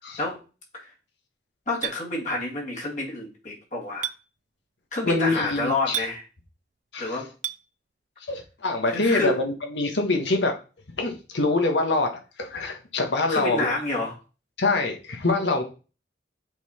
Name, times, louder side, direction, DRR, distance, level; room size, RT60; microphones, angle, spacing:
voice 1, 1.7-4.1 4.9-6.2 7.0-7.3 8.9-9.4 13.3-14.2, left 2 dB, 45° left, -1 dB, 1.9 m, -28 dB
Chink clink, 1.8-2.0 4.0-4.2 5.9-6.1 7.4-7.6, right 11 dB, 45° right, 0.4 m, -29 dB
voice 2, 5.0-6.0 6.9-7.2 8.3-10.5 11.0-12.1 12.4-13.7 14.6-15.6, left 2 dB, 85° left, 3 dB, 1.4 m, -25 dB
8.0 x 4.0 x 4.3 m, 0.34 s
head